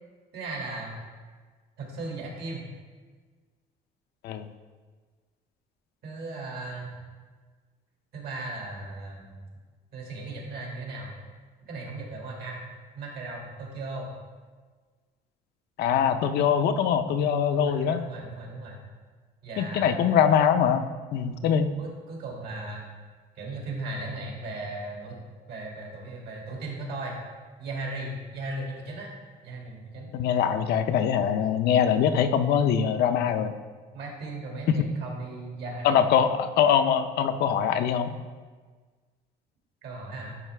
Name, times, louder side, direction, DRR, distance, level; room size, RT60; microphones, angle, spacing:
voice 1, 0.3-1.0 1.8-2.7 6.0-7.0 8.1-9.3 9.9-11.1 11.7-12.6 12.9-14.1 17.5-18.8 19.4-20.0 21.8-22.8 23.4-25.2 25.5-27.2 27.6-29.1 29.4-30.1 33.9-36.0 39.8-40.4, right 2 dB, 70° right, -1 dB, 2.0 m, -37 dB
voice 2, 15.8-18.1 19.6-21.7 30.1-33.5 34.7-34.8 35.8-38.1, left 8 dB, 70° left, 9 dB, 0.5 m, -23 dB
9.7 x 4.5 x 3.3 m, 1.5 s
cardioid pair, 110°, 17 cm